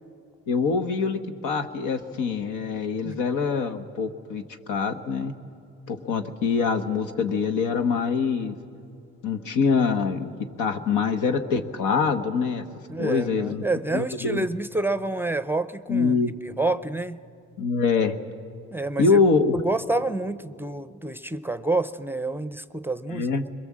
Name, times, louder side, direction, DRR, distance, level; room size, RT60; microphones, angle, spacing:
voice 1, 0.5-4.4 4.7-5.3 5.9-8.5 9.2-10.3 10.6-12.6 13.0-13.6 13.9-14.4 15.9-16.3 17.6-18.2 19.0-19.5 23.1-23.5, left 5 dB, 85° left, 7 dB, 1.4 m, -24 dB
voice 2, 12.9-16.1 16.4-17.2 18.7-19.2 19.5-23.3, right 2 dB, 5° right, 13 dB, 0.5 m, -28 dB
23.0 x 22.0 x 7.5 m, 2.6 s
cardioid pair, 90°, 30 cm